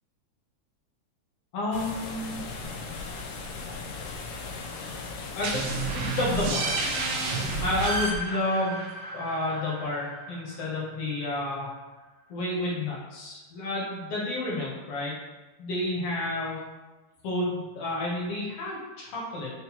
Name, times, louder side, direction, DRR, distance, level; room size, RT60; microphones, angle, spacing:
voice 1, 1.5-2.4 5.3-6.8 7.6-8.8 9.1-11.7 12.3-15.1 15.6-16.6 17.2-19.5, left 2 dB, 70° left, -5 dB, 1.4 m, -30 dB
sound 1, 1.7-8.1, left 4 dB, 90° left, 2.0 m, -38 dB
sound 2, 5.4-10.9, right 3 dB, 85° right, 1.4 m, -31 dB
5.4 x 2.1 x 2.8 m, 1.2 s
omnidirectional pair, 3.4 m